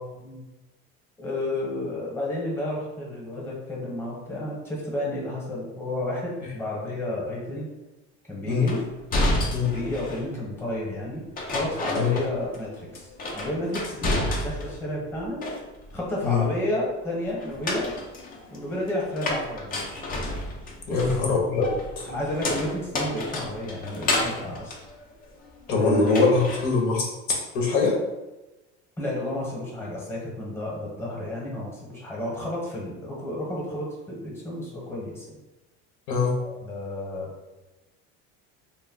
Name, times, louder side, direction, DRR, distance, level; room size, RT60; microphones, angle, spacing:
voice 1, 1.2-7.7 8.3-8.8 9.7-15.4 15.9-17.9 18.5-19.8 20.9-21.1 22.1-24.7 25.7-26.3 29.0-35.4 36.4-37.3, left 1 dB, 5° left, -4 dB, 0.9 m, -31 dB
sound 1, 8.7-10.3 11.4-12.7 12.9-14.8 15.1-16.0 17.4-25.7 26.1-26.7, left 1 dB, 25° left, 0.5 m, -30 dB
voice 2, 20.9-21.7 22.0-22.1 25.7-28.0 36.1-36.3, left 4 dB, 70° left, -1 dB, 0.8 m, -23 dB
2.2 x 2.0 x 3.7 m, 1.1 s
supercardioid pair, 110°, 33 cm